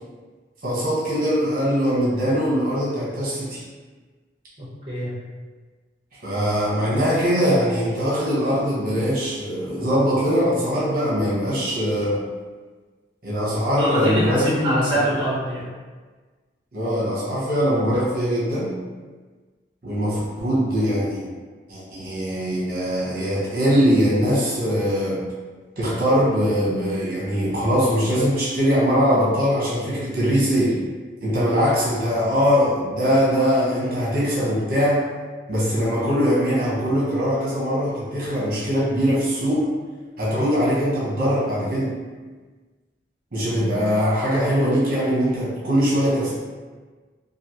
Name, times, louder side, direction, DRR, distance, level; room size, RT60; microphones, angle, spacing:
voice 1, 0.6-3.6 6.2-12.2 13.2-14.5 16.7-18.8 19.8-21.2 21.7-25.2 25.8-30.8 31.2-35.0 35.5-39.7 40.2-41.9 43.3-46.4, equal, 55° right, -8 dB, 0.9 m, -21 dB
voice 2, 4.6-5.2 13.8-15.7, equal, 30° right, -8 dB, 0.9 m, -23 dB
3.1 x 2.4 x 2.8 m, 1.4 s
head